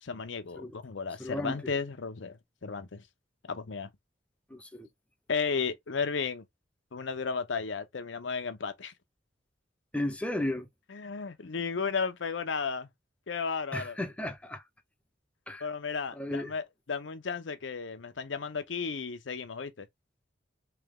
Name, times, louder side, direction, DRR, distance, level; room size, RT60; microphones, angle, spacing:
voice 1, 0.0-3.0 3.4-3.9 5.3-6.4 6.9-8.9 10.9-12.9 13.3-14.0 15.6-19.9, left 5 dB, 75° left, 0.7 m, -34 dB
voice 2, 1.2-1.6 4.5-4.9 9.9-10.7 13.7-14.6 15.5-15.7 16.2-16.5, left 1 dB, 5° left, 0.6 m, -34 dB
3.4 x 2.9 x 3.5 m
head